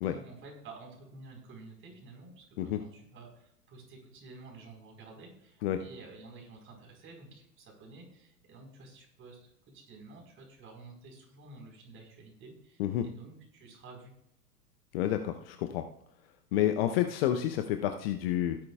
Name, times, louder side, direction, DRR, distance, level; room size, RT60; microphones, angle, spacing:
voice 1, 0.0-14.1, right 3 dB, 25° right, 0 dB, 4.5 m, -51 dB
voice 2, 14.9-15.8 16.5-18.6, left 11 dB, 40° left, 7 dB, 0.8 m, -29 dB
16.5 x 10.5 x 2.4 m, 0.72 s
figure-of-eight pair, 100°, 47 cm